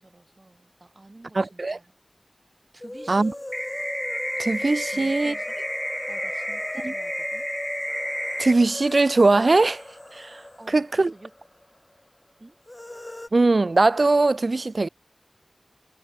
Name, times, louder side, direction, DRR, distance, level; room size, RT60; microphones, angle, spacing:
voice 1, 0.0-2.0 2.7-3.4 4.9-5.6 6.1-7.5 10.6-11.3 12.4-12.6, right 2 dB, 50° right, 4.5 m, -49 dB
voice 2, 1.4-1.8 3.1-3.3 4.4-5.3 8.4-9.8 10.1-10.4 10.7-11.1 13.3-14.9, right 3 dB, 75° right, 0.4 m, -20 dB
sound 1, 2.8-11.6 11.9-12.0 12.7-13.3, left 1 dB, 30° left, 2.3 m, -38 dB
sound 2, 3.5-8.5, equal, 10° left, 0.4 m, -31 dB
wide cardioid pair, 50°, 0 cm